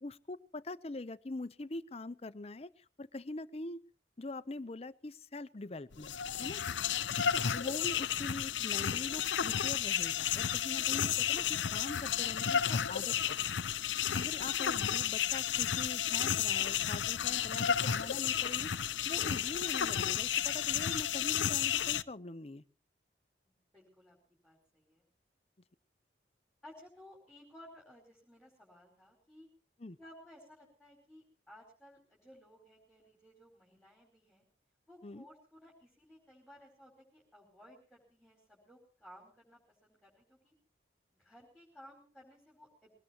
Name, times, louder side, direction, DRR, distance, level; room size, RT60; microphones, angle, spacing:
voice 1, 0.0-3.8 4.2-6.1 6.4-6.6 7.3-13.5 14.1-22.6 29.8-30.0 35.0-35.3, left 2 dB, 35° left, 15 dB, 0.7 m, -43 dB
sound 1, 5.9-22.0, left 9 dB, 85° left, 0.7 m, -32 dB
voice 2, 23.5-24.2 24.4-25.1 26.6-29.5 30.0-34.4 34.9-40.5 41.2-42.9, equal, 5° right, -2 dB, 4.7 m, -58 dB
22.0 x 19.0 x 3.0 m, 0.41 s
head